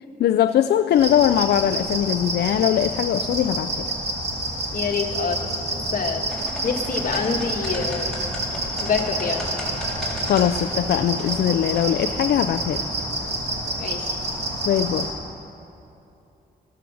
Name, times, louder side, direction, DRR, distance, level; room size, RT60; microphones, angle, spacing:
voice 1, 0.2-3.9 10.3-12.8 14.7-15.1, left 10 dB, 75° left, 9 dB, 0.4 m, -21 dB
sound 1, 0.9-15.1, right 2 dB, 90° right, 2.6 m, -28 dB
voice 2, 4.7-5.6 5.9-6.2 6.6-8.2 8.8-9.5 13.8-14.2, left 5 dB, 55° left, 3 dB, 1.5 m, -26 dB
sound 2, 6.3-11.8, left 1 dB, 5° left, 4.1 m, -36 dB
14.0 x 14.0 x 6.3 m, 2.9 s
cardioid pair, 115°, 17 cm